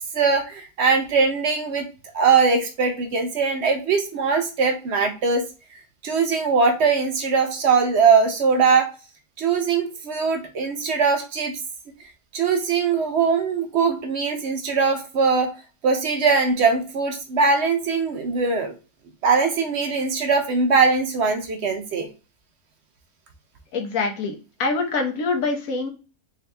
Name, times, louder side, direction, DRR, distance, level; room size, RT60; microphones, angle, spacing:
voice 1, 0.1-1.9 2.1-5.5 6.0-8.9 9.4-11.6 12.3-15.5 15.8-18.7 19.2-22.1, right 5 dB, 60° right, 6 dB, 0.7 m, -21 dB
voice 2, 23.7-25.9, left 3 dB, 65° left, 3 dB, 1.3 m, -25 dB
3.7 x 2.8 x 3.3 m, 0.33 s
omnidirectional pair, 1.6 m